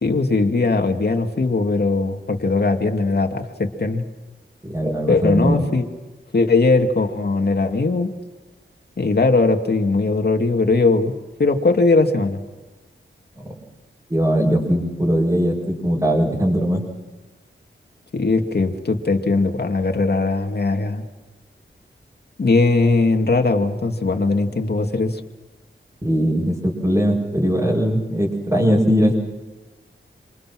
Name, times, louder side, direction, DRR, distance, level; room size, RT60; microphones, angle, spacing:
voice 1, 0.0-4.0 5.1-5.8 6.3-8.1 9.0-11.1 11.4-12.4 18.1-21.0 22.4-25.2, left 3 dB, 55° left, 4 dB, 2.5 m, -19 dB
voice 2, 4.6-5.6 14.1-16.8 26.0-29.1, equal, 20° right, -5 dB, 6.3 m, -20 dB
27.5 x 26.5 x 6.3 m, 1.2 s
wide cardioid pair, 100°, 20 cm